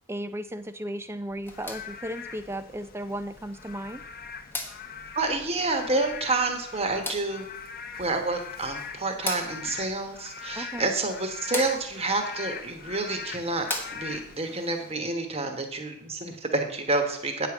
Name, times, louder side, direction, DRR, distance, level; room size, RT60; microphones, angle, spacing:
voice 1, 0.1-4.0 10.6-10.9, right 1 dB, 10° right, 11 dB, 0.4 m, -35 dB
sound 1, 1.3-14.4, left 2 dB, 10° left, 1.0 m, -41 dB
Frog / Rain, 1.5-14.9, left 6 dB, 40° left, 0.7 m, -42 dB
voice 2, 5.1-7.5 8.0-17.5, right 2 dB, 25° right, 5 dB, 1.2 m, -29 dB
9.0 x 5.0 x 7.1 m, 0.76 s
head